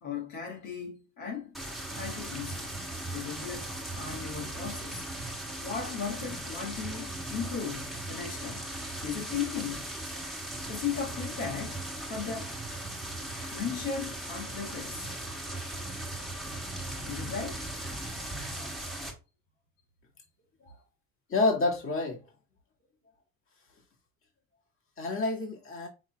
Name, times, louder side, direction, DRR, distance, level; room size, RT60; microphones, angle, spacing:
voice 1, 0.0-1.6 1.9-2.7 3.1-5.1 5.6-8.6 9.0-10.0 10.7-12.5 13.5-15.2 17.0-17.6, left 6 dB, 65° left, 1.6 m, -37 dB
sound 1, 1.5-19.1, right 1 dB, ahead, 1.7 m, -38 dB
voice 2, 21.3-22.2 25.0-25.9, left 3 dB, 40° left, 2.0 m, -28 dB
5.8 x 3.8 x 2.3 m
supercardioid pair, 85°, 32 cm